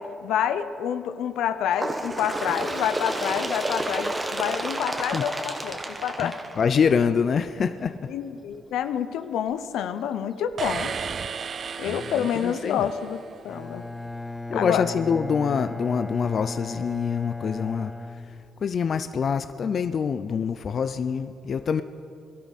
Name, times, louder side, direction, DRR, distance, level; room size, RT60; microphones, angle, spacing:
voice 1, 0.0-6.4 8.1-10.9 11.8-13.8 14.5-14.8, left 9 dB, 85° left, 11 dB, 0.8 m, -28 dB
Bird, 1.7-7.2 8.0-8.2 8.5-8.6 9.5-9.6 10.5-10.6 11.5-11.6, right 1 dB, 20° right, 1.4 m, -31 dB
voice 2, 6.2-8.0 11.9-12.9 14.5-17.9 18.3-18.4 18.6-21.8, left 6 dB, 50° left, 11 dB, 0.5 m, -25 dB
sound 1, 10.6-13.4, right 6 dB, 50° right, 0.4 m, -34 dB
Bowed string instrument, 13.5-19.0, left 2 dB, 10° left, 0.9 m, -36 dB
21.5 x 12.5 x 4.2 m, 2.6 s
cardioid pair, 90°, 0 cm